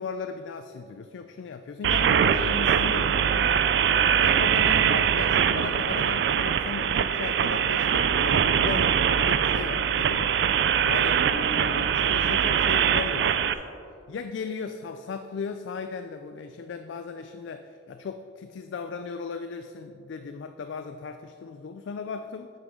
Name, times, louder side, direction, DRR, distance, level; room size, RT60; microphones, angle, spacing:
voice 1, 0.0-3.6 4.2-10.4 10.8-13.6 14.1-22.5, left 5 dB, 70° left, 8 dB, 0.3 m, -36 dB
sound 1, 1.8-13.5, right 8 dB, 60° right, 0.3 m, -23 dB
8.9 x 6.8 x 3.7 m, 2.5 s
head